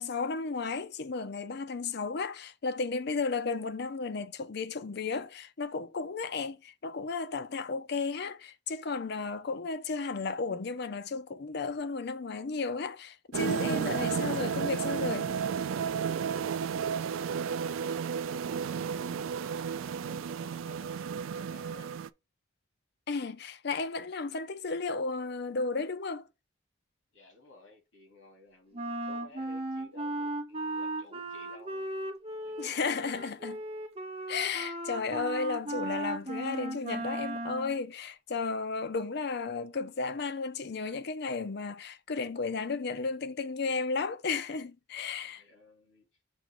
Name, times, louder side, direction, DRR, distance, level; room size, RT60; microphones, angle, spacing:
voice 1, 0.0-15.3 23.1-26.3 32.6-33.6 34.3-45.4, left 4 dB, 55° left, 0.6 m, -34 dB
sound 1, 13.3-22.1, right 7 dB, 90° right, 0.4 m, -32 dB
voice 2, 16.1-19.5 20.0-22.0 27.1-31.9 32.3-33.6 45.2-46.1, left 2 dB, 75° left, 2.5 m, -56 dB
Wind instrument woodwind instrument, 28.7-37.8, right 1 dB, 30° right, 0.9 m, -36 dB
6.2 x 2.9 x 5.3 m
head